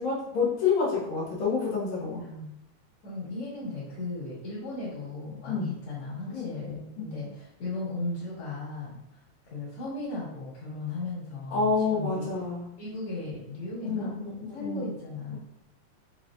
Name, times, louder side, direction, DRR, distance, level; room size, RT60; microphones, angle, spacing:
voice 1, 0.0-2.2 5.5-5.7 6.3-6.7 11.5-12.7 13.8-14.3 14.6-14.9, left 4 dB, 70° left, -8 dB, 2.6 m, -28 dB
voice 2, 2.1-2.6 3.0-9.2 9.5-12.4 12.8-14.1 14.5-15.4, left 2 dB, 55° left, -8 dB, 2.3 m, -36 dB
6.1 x 3.2 x 2.4 m, 0.83 s
omnidirectional pair, 3.3 m